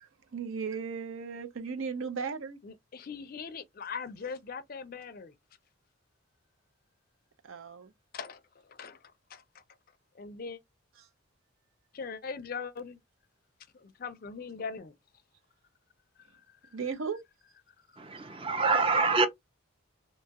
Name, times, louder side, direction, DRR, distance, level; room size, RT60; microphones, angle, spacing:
voice 1, 0.0-2.6 7.4-7.9 11.0-11.1 16.7-17.2, right 5 dB, 70° right, 0.5 m, -36 dB
voice 2, 2.6-5.3 8.1-8.4 8.7-9.0 9.3-9.6 10.2-10.6 11.9-13.0 13.7-14.9 18.2-18.5, left 5 dB, 45° left, 0.4 m, -40 dB
voice 3, 18.0-19.3, right 4 dB, 25° right, 0.4 m, -26 dB
2.8 x 2.2 x 2.8 m
head